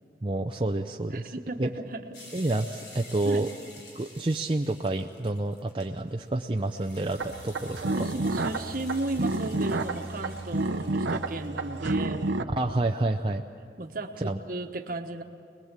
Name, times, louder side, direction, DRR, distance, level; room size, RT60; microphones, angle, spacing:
voice 1, 0.2-1.3 1.6-1.7 2.3-3.5 3.9-8.1 12.6-13.4 14.2-14.4, right 2 dB, 30° right, 2 dB, 0.6 m, -29 dB
voice 2, 1.1-2.0 3.2-3.5 7.8-12.4 13.8-15.2, right 2 dB, 50° right, 5 dB, 1.3 m, -35 dB
sound 1, 2.1-11.9, left 2 dB, 60° left, 4.7 m, -50 dB
sound 2, 7.2-12.4, right 2 dB, 85° right, 0.9 m, -30 dB
25.5 x 20.5 x 7.4 m, 2.6 s
head